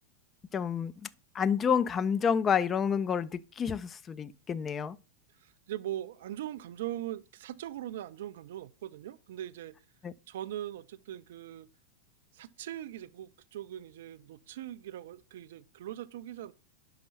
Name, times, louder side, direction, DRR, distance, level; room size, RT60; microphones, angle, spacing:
voice 1, 0.5-1.1 1.3-5.0 10.0-10.1, left 7 dB, 25° left, 0.4 m, -29 dB
voice 2, 5.3-9.7 10.3-11.7 12.3-16.5, right 12 dB, 55° right, 0.3 m, -41 dB
5.6 x 5.2 x 5.6 m
figure-of-eight pair, 90°, 0 cm